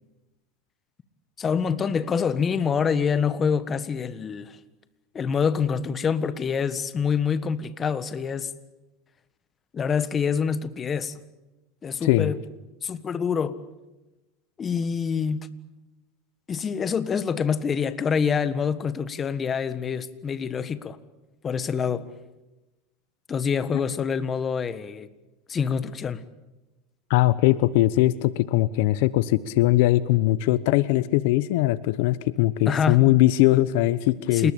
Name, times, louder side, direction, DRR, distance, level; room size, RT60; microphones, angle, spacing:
voice 1, 1.4-4.6 5.1-8.5 9.7-11.2 11.8-12.4 12.8-13.6 14.6-15.5 16.5-21.0 21.4-22.1 23.3-25.1 25.5-26.2 32.7-33.0 34.3-34.5, left 6 dB, 25° left, 1.5 m, -26 dB
voice 2, 12.0-12.3 23.7-23.8 27.1-34.5, left 16 dB, 70° left, 1.0 m, -21 dB
28.5 x 19.5 x 8.7 m
supercardioid pair, 120°, 0 cm